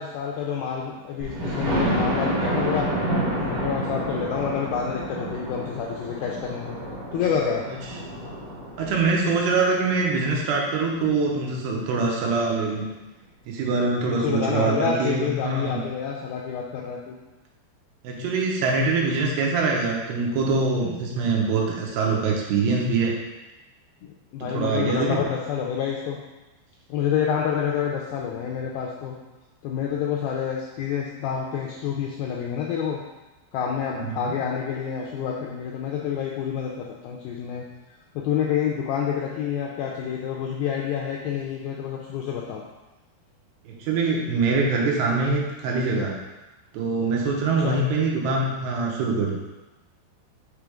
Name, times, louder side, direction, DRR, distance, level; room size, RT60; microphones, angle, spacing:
voice 1, 0.0-2.9 3.4-6.8 7.1-7.6 14.1-17.2 24.0-26.2 26.9-29.2 29.6-33.0 33.5-37.6 38.2-42.6 47.6-47.8, left 7 dB, 85° left, -2 dB, 2.1 m, -28 dB
Thunder, 1.2-10.9 11.5-11.6 12.0-12.1 12.4-12.5, right 1 dB, 60° right, 2.5 m, -29 dB
voice 2, 8.8-12.9 13.5-15.8 18.0-23.1 24.4-25.3 33.9-34.4 43.7-46.2 46.7-49.4, right 3 dB, 80° right, -1 dB, 2.8 m, -24 dB
7.0 x 3.4 x 4.9 m, 1.1 s
omnidirectional pair, 4.9 m